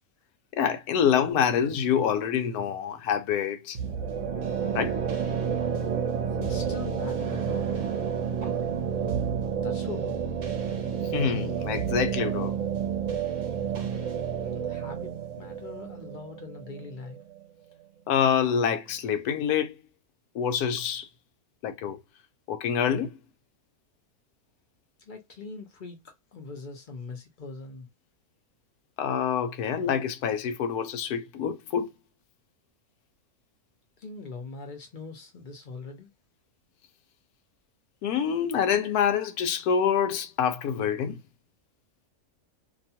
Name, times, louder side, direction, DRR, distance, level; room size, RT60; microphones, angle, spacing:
voice 1, 0.5-3.8 4.7-5.0 11.1-12.5 18.1-19.7 20.3-21.1 21.6-22.0 22.5-23.1 29.0-31.9 38.0-41.2, left 8 dB, 80° left, 1.1 m, -26 dB
sound 1, 3.7-17.4, right 7 dB, 60° right, 1.0 m, -30 dB
voice 2, 6.3-7.6 9.6-10.2 14.4-17.2 25.0-27.9 34.0-36.1, left 4 dB, 45° left, 0.7 m, -41 dB
2.9 x 2.3 x 2.7 m
omnidirectional pair, 1.6 m